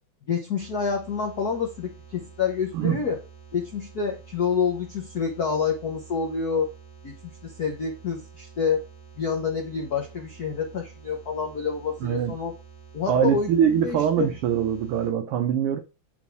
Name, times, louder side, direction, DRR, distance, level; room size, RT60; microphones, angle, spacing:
voice 1, 0.3-3.2 3.5-6.7 7.0-8.8 9.2-12.5 12.9-14.3, left 6 dB, 75° left, 0.8 m, -28 dB
sound 1, 0.6-15.1, right 7 dB, 25° left, 2.3 m, -48 dB
voice 2, 12.0-12.3 13.1-15.8, right 9 dB, 85° right, 1.2 m, -23 dB
8.1 x 3.7 x 4.7 m
omnidirectional pair, 3.3 m